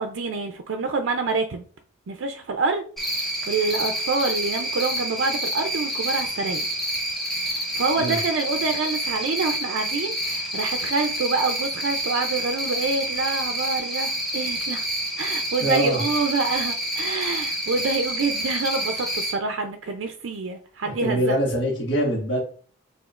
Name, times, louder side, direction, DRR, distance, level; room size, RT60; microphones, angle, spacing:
voice 1, 0.0-1.7 2.1-6.6 7.4-14.9 15.2-21.4, right 4 dB, 75° right, 6 dB, 0.4 m, -27 dB
Cricket, 3.0-19.3, right 1 dB, ahead, 0.9 m, -28 dB
voice 2, 15.6-16.0 20.8-22.4, equal, 60° left, -1 dB, 1.6 m, -24 dB
4.9 x 3.5 x 2.4 m, 0.44 s
head